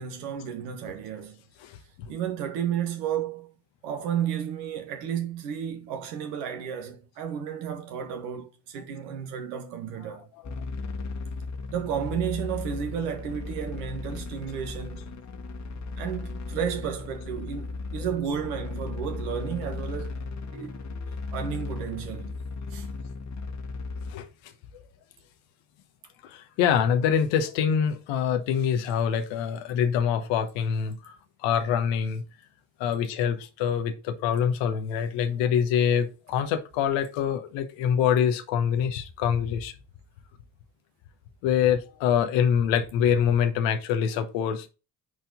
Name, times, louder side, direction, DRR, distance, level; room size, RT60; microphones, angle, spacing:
voice 1, 0.0-1.4 2.1-3.5 3.8-10.3 11.7-15.1 16.0-20.2 20.5-20.8 21.3-22.3 22.7-22.9, right 8 dB, 70° right, 1.5 m, -32 dB
voice 2, 1.6-2.1 24.1-24.3 26.2-31.1 31.4-32.2 32.8-39.7 41.4-44.7, left 8 dB, 65° left, 1.2 m, -25 dB
sound 1, 10.4-24.1, left 3 dB, 35° left, 1.6 m, -36 dB
9.7 x 4.2 x 3.9 m
figure-of-eight pair, 40°, 48 cm